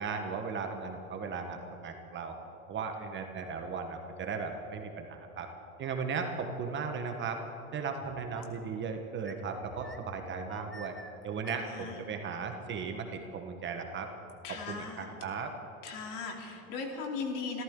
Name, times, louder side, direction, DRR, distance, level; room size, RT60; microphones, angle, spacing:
voice 1, 0.0-2.4 2.7-5.5 5.8-7.4 7.7-11.0 11.2-14.1 14.7-15.5, right 5 dB, 25° right, 5 dB, 1.2 m, -36 dB
sound 1, 8.0-8.6 9.2-11.9, right 1 dB, ahead, 1.0 m, -49 dB
voice 2, 11.6-12.0 14.4-15.1 15.8-17.6, left 4 dB, 50° left, 1 dB, 3.0 m, -38 dB
26.5 x 14.0 x 3.8 m, 3.0 s
supercardioid pair, 130°, 41 cm